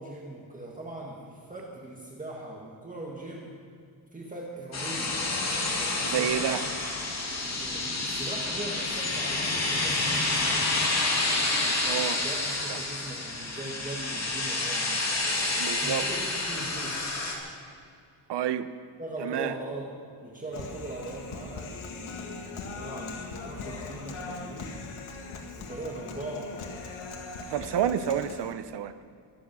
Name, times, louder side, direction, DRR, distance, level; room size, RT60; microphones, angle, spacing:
voice 1, 0.0-3.5 4.1-5.2 6.0-6.4 7.4-10.8 12.2-15.0 15.8-17.1 19.0-19.9 20.2-24.8 25.5-26.6, right 2 dB, 15° right, -3 dB, 1.7 m, -40 dB
sound 1, 4.7-17.4, left 2 dB, 35° left, 2.5 m, -29 dB
voice 2, 6.0-6.6 11.8-12.2 12.7-12.8 15.6-16.1 18.3-18.7 19.2-19.5 27.5-28.9, right 9 dB, 60° right, 11 dB, 0.8 m, -29 dB
Human voice, 20.5-28.5, left 4 dB, 85° left, 2.0 m, -40 dB
23.5 x 8.5 x 6.1 m, 2.4 s
wide cardioid pair, 160°, 48 cm